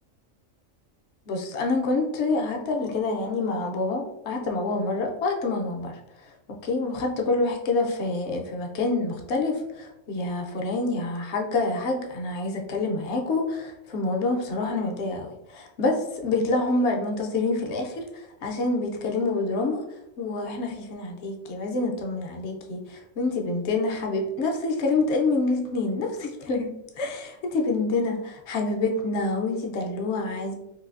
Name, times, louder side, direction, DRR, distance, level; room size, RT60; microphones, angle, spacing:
voice 1, 1.3-6.3 6.6-19.8 20.2-30.5, left 3 dB, 60° left, 2 dB, 0.8 m, -27 dB
3.9 x 2.6 x 2.4 m, 0.88 s
omnidirectional pair, 1.4 m